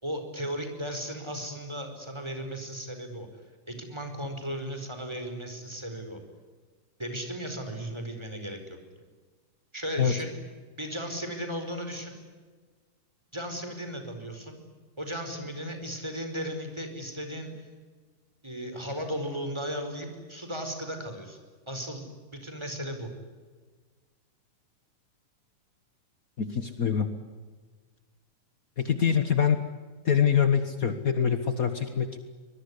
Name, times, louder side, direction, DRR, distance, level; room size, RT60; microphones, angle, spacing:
voice 1, 0.0-3.3 3.7-6.2 7.0-8.8 9.7-10.3 10.8-12.2 13.3-14.6 15.0-17.7 18.4-21.4 21.7-22.1 22.3-23.1, equal, 10° right, 6 dB, 4.7 m, -36 dB
voice 2, 26.4-27.1 28.8-29.6 30.0-32.2, left 7 dB, 70° left, 9 dB, 0.8 m, -24 dB
24.5 x 21.5 x 9.9 m, 1.4 s
omnidirectional pair, 3.8 m